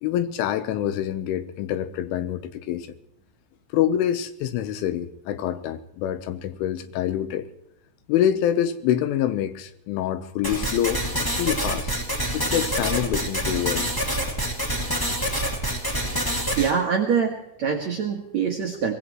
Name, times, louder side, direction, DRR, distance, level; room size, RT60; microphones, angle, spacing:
voice 1, 0.0-3.0 3.7-7.5 8.1-11.9 12.3-13.9, left 10 dB, 90° left, 11 dB, 3.5 m, -26 dB
sound 1, 10.4-16.7, right 1 dB, 20° left, 0.5 m, -26 dB
voice 2, 16.6-18.9, right 6 dB, 65° right, 1 dB, 1.7 m, -24 dB
24.0 x 18.5 x 3.1 m, 0.83 s
omnidirectional pair, 5.4 m